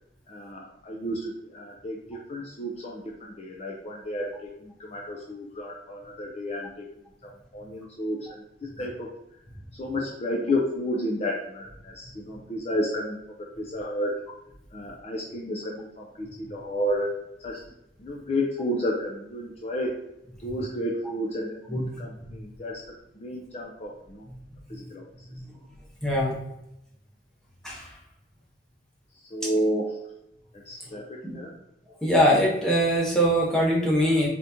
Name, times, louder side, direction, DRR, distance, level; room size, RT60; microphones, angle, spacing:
voice 1, 0.3-6.8 7.2-9.1 9.7-14.2 14.7-17.1 17.4-17.6 18.0-19.9 20.4-22.9 23.1-24.3 24.7-25.3 29.3-29.9 30.5-31.5, equal, 35° left, -1 dB, 0.4 m, -31 dB
voice 2, 26.0-26.4 27.6-28.0 30.9-31.4 32.0-34.3, equal, 5° left, -5 dB, 0.9 m, -23 dB
3.9 x 3.5 x 2.8 m, 0.84 s
head